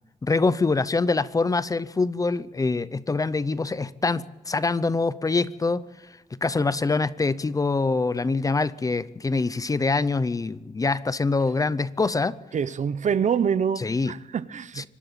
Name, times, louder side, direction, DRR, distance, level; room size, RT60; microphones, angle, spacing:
voice 1, 0.2-5.8 6.3-12.4 13.8-14.1 14.8-14.9, left 3 dB, 25° left, 0.6 m, -24 dB
voice 2, 12.5-13.8 14.1-14.9, right 7 dB, 55° right, 0.7 m, -25 dB
25.0 x 12.0 x 8.9 m
wide cardioid pair, 145°, 15 cm